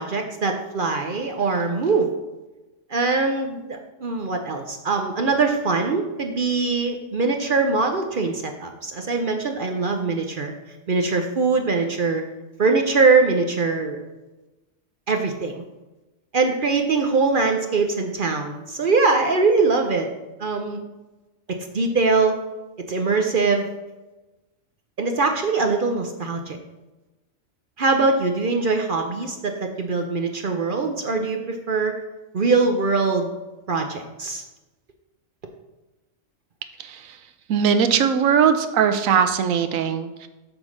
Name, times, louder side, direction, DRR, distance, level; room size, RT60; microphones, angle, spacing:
voice 1, 0.0-2.1 2.9-10.5 10.9-12.2 12.6-14.0 15.1-15.6 16.3-20.1 20.4-20.8 21.7-22.4 22.9-23.7 25.0-26.6 27.8-32.0 32.3-33.3 33.7-34.4, right 4 dB, 50° right, 4 dB, 0.7 m, -22 dB
voice 2, 36.8-37.2 37.5-40.3, right 7 dB, 80° right, 9 dB, 1.1 m, -20 dB
7.8 x 3.8 x 6.3 m, 1.1 s
omnidirectional pair, 1.4 m